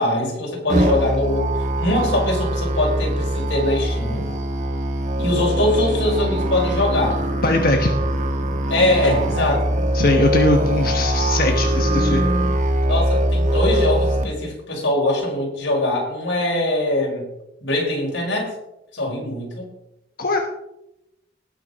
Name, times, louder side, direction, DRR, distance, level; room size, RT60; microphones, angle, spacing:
voice 1, 0.0-1.5 1.8-4.3 5.2-7.2 8.7-9.8 12.8-17.3 17.6-18.5 18.9-19.7, left 1 dB, 90° left, -1 dB, 5.3 m, -22 dB
Musical instrument, 0.7-14.2, right 1 dB, 40° right, 1.5 m, -22 dB
voice 2, 7.4-7.9 9.9-12.2 20.2-20.4, left 2 dB, 50° left, 3 dB, 1.1 m, -20 dB
19.0 x 6.5 x 5.3 m, 0.87 s
head